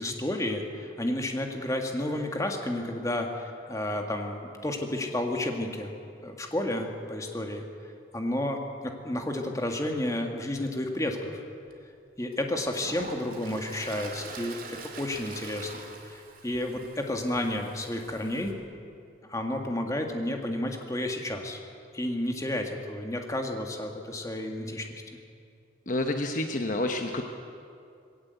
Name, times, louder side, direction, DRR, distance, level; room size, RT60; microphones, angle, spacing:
voice 1, 0.0-5.9 6.2-7.6 8.1-11.4 12.2-18.5 19.3-21.6 21.9-24.9, left 1 dB, 15° left, 3 dB, 1.8 m, -31 dB
Toilet flush, 11.7-11.8 12.3-18.5, right 3 dB, 50° right, 2.5 m, -44 dB
voice 2, 25.9-27.2, left 1 dB, 45° left, 4 dB, 1.0 m, -29 dB
20.0 x 17.5 x 8.2 m, 2.4 s
head